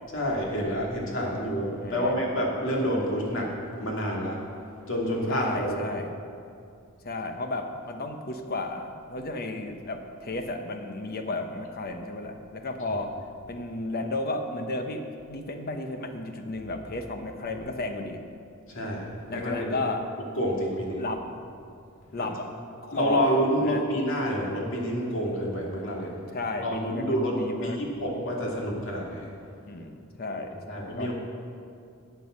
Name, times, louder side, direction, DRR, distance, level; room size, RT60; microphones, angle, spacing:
voice 1, 0.1-3.5 3.8-4.4 4.9-5.8 12.9-13.0 18.7-19.0 19.3-19.8 20.3-21.0 22.2-22.3 22.9-26.1 26.6-29.3 30.7-31.1, equal, 65° left, -2 dB, 2.5 m, -28 dB
voice 2, 1.8-2.2 5.3-6.1 7.0-13.2 13.5-18.2 19.3-20.1 21.0-21.3 22.1-22.5 22.8-23.3 23.6-23.8 26.3-27.8 29.7-31.1, left 2 dB, 45° left, 5 dB, 1.0 m, -33 dB
12.5 x 7.8 x 6.4 m, 2.4 s
head